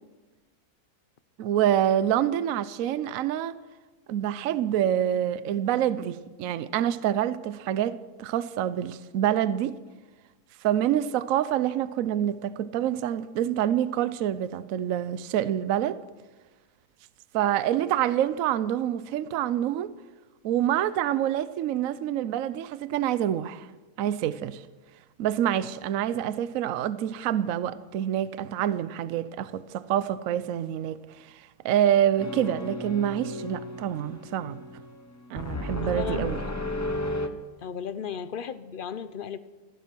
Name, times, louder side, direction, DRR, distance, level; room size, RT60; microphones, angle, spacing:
voice 1, 1.4-3.6 4.1-9.7 10.6-16.0 17.3-19.9 20.4-23.7 24.0-24.6 25.2-34.6 35.3-36.4, right 11 dB, 70° right, 1.0 m, -27 dB
sound 1, 32.2-37.3, left 1 dB, 15° left, 0.8 m, -33 dB
voice 2, 35.7-36.3 37.6-39.4, left 7 dB, 50° left, 0.6 m, -35 dB
15.5 x 14.5 x 6.0 m
omnidirectional pair, 1.6 m